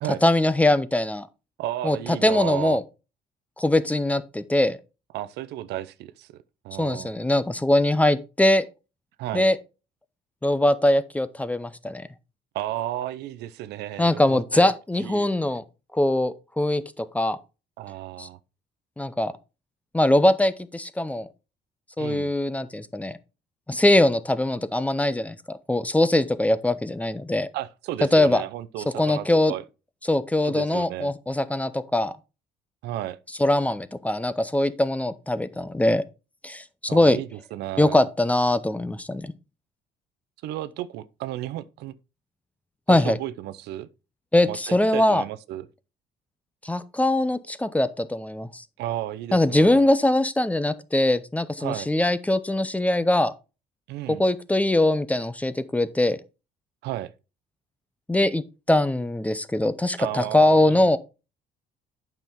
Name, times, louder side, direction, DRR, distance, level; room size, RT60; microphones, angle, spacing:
voice 1, 0.2-1.3 1.8-2.8 3.6-4.8 6.8-8.7 9.3-9.6 10.4-12.1 14.0-15.6 15.9-17.4 18.2-18.3 19.0-19.3 19.9-21.3 22.0-23.2 23.7-27.5 28.1-28.4 29.0-29.5 30.1-32.1 33.4-36.0 36.4-37.2 37.8-39.3 42.9-43.2 44.3-45.2 46.6-48.6 49.3-53.3 54.1-56.2 58.1-61.0, left 1 dB, 10° left, 0.6 m, -22 dB
voice 2, 1.6-2.8 5.1-6.3 6.6-7.1 9.2-9.5 12.5-14.7 15.0-15.3 17.8-18.4 22.0-22.3 27.5-29.6 30.4-31.1 32.8-33.2 36.9-38.0 40.4-41.9 42.9-43.9 44.5-45.7 48.8-49.9 51.6-51.9 53.9-54.2 56.8-57.1 60.0-60.9, right 14 dB, 80° right, 0.6 m, -33 dB
8.9 x 6.0 x 3.6 m
cardioid pair, 110°, 17 cm